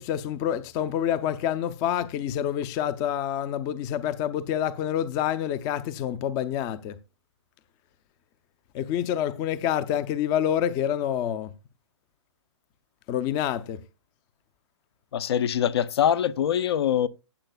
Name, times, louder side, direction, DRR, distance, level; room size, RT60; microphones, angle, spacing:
voice 1, 0.0-7.0 8.7-11.5 13.1-13.8, left 10 dB, 25° left, 0.6 m, -27 dB
voice 2, 15.1-17.1, left 9 dB, 55° left, 0.7 m, -23 dB
16.0 x 8.0 x 2.3 m
hypercardioid pair, 145°, 16 cm